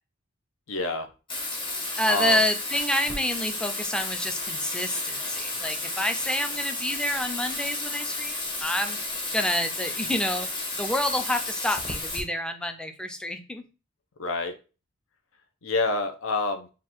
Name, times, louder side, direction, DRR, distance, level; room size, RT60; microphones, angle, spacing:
voice 1, 0.7-1.1 2.1-2.4 14.2-14.5 15.6-16.7, left 3 dB, 70° left, 6 dB, 0.8 m, -27 dB
Bathtub (filling or washing), 1.3-12.2, left 2 dB, 25° left, 1.0 m, -32 dB
voice 2, 2.0-9.0 9.3-10.5 10.8-13.6, left 1 dB, 5° left, 6 dB, 0.4 m, -28 dB
3.7 x 2.5 x 4.5 m, 0.32 s
head